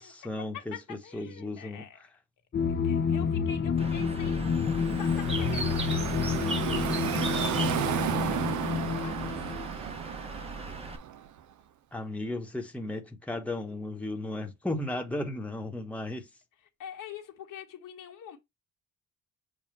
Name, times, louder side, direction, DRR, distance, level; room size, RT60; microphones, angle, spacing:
voice 1, 0.0-1.8 2.7-2.9 11.9-16.3, left 1 dB, 5° left, 1.2 m, -35 dB
voice 2, 0.5-2.0 2.8-6.8 7.8-9.6 16.8-18.4, left 8 dB, 75° left, 1.6 m, -45 dB
sound 1, 2.5-9.7, left 6 dB, 35° left, 0.7 m, -29 dB
Bird, 3.8-11.0, right 2 dB, 20° right, 1.1 m, -38 dB
Car passing by / Traffic noise roadway noise, 4.5-11.4, right 11 dB, 65° right, 0.7 m, -34 dB
7.3 x 2.4 x 5.6 m
cardioid pair, 95°, 32 cm